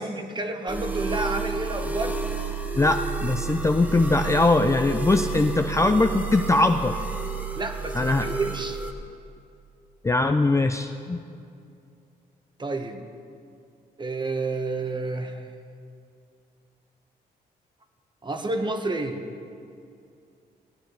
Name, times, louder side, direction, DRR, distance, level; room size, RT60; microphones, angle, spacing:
voice 1, 0.0-2.2 7.5-8.8 12.6-13.0 14.0-15.4 18.2-19.2, right 2 dB, 25° right, 5 dB, 1.1 m, -30 dB
sound 1, 0.7-8.9, right 4 dB, 10° right, 1.3 m, -31 dB
voice 2, 2.7-7.0 7.9-8.3 10.0-11.2, left 2 dB, 15° left, 6 dB, 0.5 m, -21 dB
17.5 x 9.5 x 4.0 m, 2.5 s
cardioid pair, 70°, 17 cm